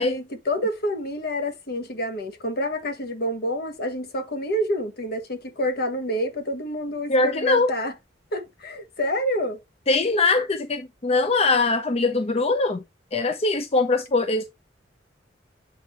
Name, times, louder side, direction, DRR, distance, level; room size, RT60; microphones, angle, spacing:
voice 1, 0.0-7.9 8.3-9.6, equal, 55° left, 1.3 m, -28 dB
voice 2, 7.1-7.7 9.9-12.8 13.1-14.4, left 3 dB, 35° left, 0.6 m, -22 dB
7.8 x 4.4 x 3.2 m
head